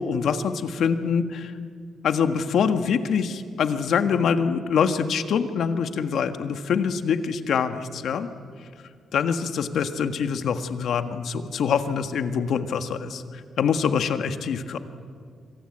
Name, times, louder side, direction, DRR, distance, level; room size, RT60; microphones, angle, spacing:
voice 1, 0.0-1.5 2.0-8.3 9.1-14.8, left 6 dB, 70° left, 8 dB, 1.6 m, -25 dB
26.0 x 25.5 x 8.8 m, 2.1 s
cardioid pair, 140°, 0 cm